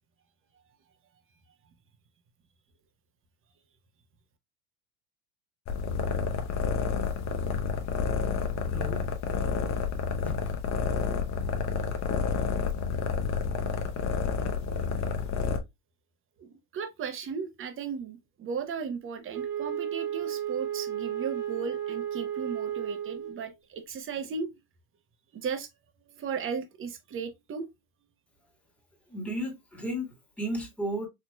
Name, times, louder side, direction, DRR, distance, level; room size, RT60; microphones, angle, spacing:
sound 1, 5.7-15.6, left 6 dB, 35° left, 0.8 m, -29 dB
voice 1, 8.7-9.1 10.2-10.4 29.1-31.1, equal, 5° left, 1.5 m, -34 dB
voice 2, 16.4-24.5 25.3-25.7 26.1-27.7, right 6 dB, 25° right, 0.9 m, -36 dB
Wind instrument woodwind instrument, 19.3-23.5, right 10 dB, 85° right, 1.0 m, -33 dB
4.4 x 2.9 x 2.2 m
supercardioid pair, 105°, 46 cm